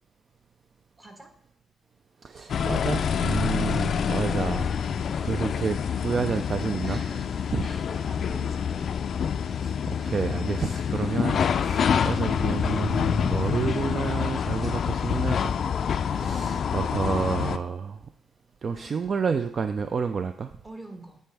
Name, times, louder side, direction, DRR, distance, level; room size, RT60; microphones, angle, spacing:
voice 1, 1.0-1.3 6.8-9.0 9.4-9.6 16.3-16.9 20.6-21.2, right 2 dB, 20° right, 3 dB, 1.4 m, -45 dB
voice 2, 2.2-7.0 7.5-7.7 9.6-15.6 16.0-18.0 18.6-20.5, right 6 dB, 45° right, 8 dB, 0.3 m, -30 dB
sound 1, 2.5-17.6, left 7 dB, 55° left, 0.3 m, -27 dB
9.0 x 4.3 x 3.4 m, 0.64 s
cardioid pair, 90°, 0 cm